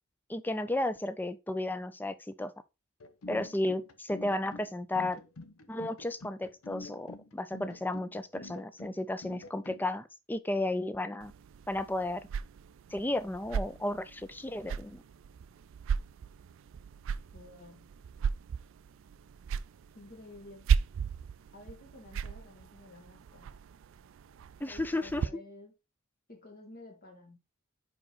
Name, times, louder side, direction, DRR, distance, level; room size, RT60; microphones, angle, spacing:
voice 1, 0.3-2.5 3.3-5.2 5.7-11.3 11.7-12.2 12.9-15.0 24.6-25.3, left 1 dB, 10° left, 0.4 m, -33 dB
sound 1, 3.0-9.8, left 2 dB, 85° left, 0.8 m, -47 dB
sound 2, 11.2-25.3, right 6 dB, 65° right, 0.3 m, -36 dB
voice 2, 17.3-17.9 19.9-20.7 21.5-23.6 24.7-25.7 26.3-27.4, left 2 dB, 45° left, 1.7 m, -51 dB
5.1 x 4.9 x 4.2 m
head